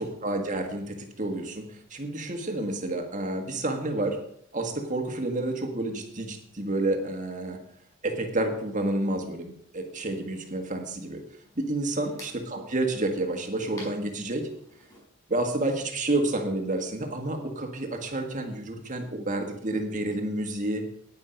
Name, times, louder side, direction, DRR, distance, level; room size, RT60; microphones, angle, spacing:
voice 1, 0.0-4.2 4.5-7.6 8.0-11.2 11.5-14.5 15.3-20.9, right 2 dB, 35° right, 4 dB, 1.7 m, -30 dB
sound 1, 9.9-15.0, left 1 dB, 15° left, 4.8 m, -52 dB
10.5 x 9.8 x 5.2 m, 0.69 s
head